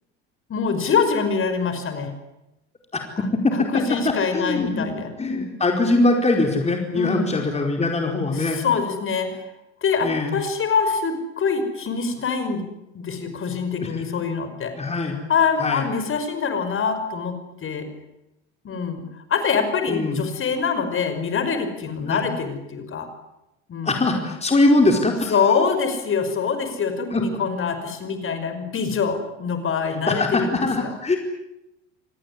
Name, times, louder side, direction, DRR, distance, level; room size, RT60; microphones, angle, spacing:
voice 1, 0.5-2.1 3.5-5.1 6.9-7.4 8.3-9.5 9.8-12.6 12.9-14.7 15.3-17.9 18.6-19.0 19.3-23.1 23.7-24.1 25.3-31.2, left 5 dB, 35° left, 8 dB, 5.5 m, -24 dB
voice 2, 4.0-4.9 5.2-8.6 10.0-10.4 13.7-14.2 14.8-15.2 15.6-15.8 19.9-20.2 22.1-22.2 23.8-25.3 27.1-27.2 30.1-31.2, left 2 dB, 20° left, 3 dB, 4.7 m, -22 dB
27.0 x 19.5 x 10.0 m, 0.90 s
hypercardioid pair, 80°, 34 cm